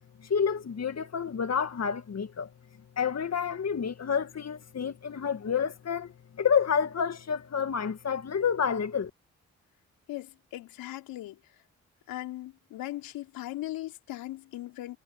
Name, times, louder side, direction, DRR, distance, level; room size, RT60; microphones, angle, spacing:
voice 1, 0.2-2.5 3.0-9.1, left 7 dB, 45° left, 2.1 m, -29 dB
voice 2, 10.1-11.4 12.1-15.0, left 15 dB, 75° left, 4.5 m, -38 dB
hypercardioid pair, 40°, 35 cm